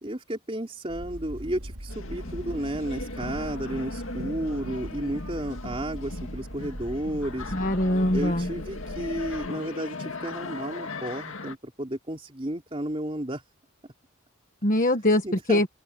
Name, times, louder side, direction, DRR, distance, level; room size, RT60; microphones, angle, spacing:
voice 1, 0.0-7.5 8.1-13.4 15.2-15.6, right 1 dB, 25° right, 3.5 m, -32 dB
sound 1, 0.9-9.5, equal, 70° right, 3.3 m, -40 dB
sound 2, 1.9-11.6, left 3 dB, 65° left, 2.3 m, -38 dB
voice 2, 7.5-8.5 14.6-15.7, left 1 dB, 35° left, 1.4 m, -23 dB
open air
head